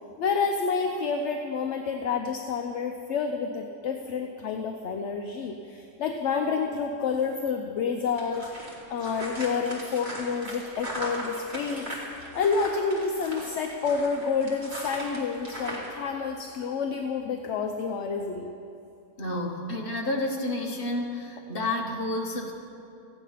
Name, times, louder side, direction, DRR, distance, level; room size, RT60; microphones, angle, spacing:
voice 1, 0.2-8.5 8.9-11.9 12.1-18.5, left 5 dB, 60° left, 4 dB, 0.9 m, -29 dB
sound 1, 8.1-15.9, right 1 dB, 30° right, 2.5 m, -38 dB
voice 2, 19.2-22.5, left 1 dB, 40° left, 1 dB, 1.4 m, -30 dB
14.5 x 9.1 x 5.7 m, 2.5 s
omnidirectional pair, 1.6 m